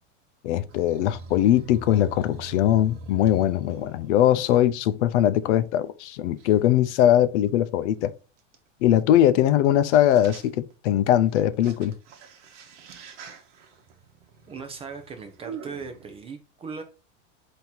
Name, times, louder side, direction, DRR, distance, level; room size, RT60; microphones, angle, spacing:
voice 1, 0.4-8.1 8.8-11.9, left 11 dB, 65° left, 0.5 m, -21 dB
sound 1, 0.7-4.7 5.4-5.5 6.4-6.5 8.5-8.6 9.6-9.7 9.9-10.7 11.2-16.2, right 4 dB, 70° right, 1.0 m, -44 dB
voice 2, 14.5-16.8, right 5 dB, 15° right, 0.4 m, -38 dB
3.8 x 2.8 x 4.3 m
hypercardioid pair, 115°, 37 cm